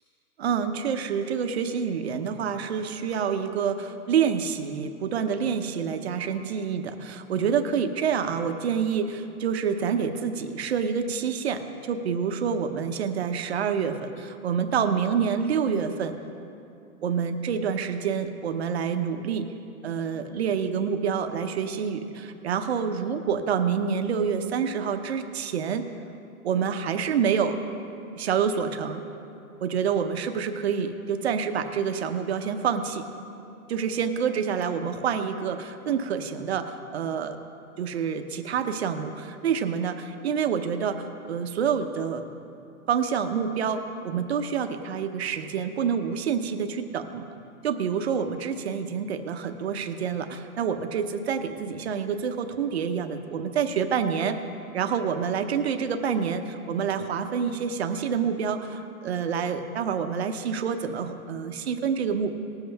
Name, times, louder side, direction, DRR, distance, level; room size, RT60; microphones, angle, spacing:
voice 1, 0.4-16.2 17.0-19.5 19.8-25.8 26.4-27.6 28.2-29.0 29.6-33.0 33.7-37.4 37.8-42.2 42.9-47.3 47.6-54.4 54.7-62.3, right 7 dB, 45° right, 7 dB, 0.9 m, -27 dB
20.0 x 7.6 x 3.5 m, 2.7 s
hypercardioid pair, 165°, 44 cm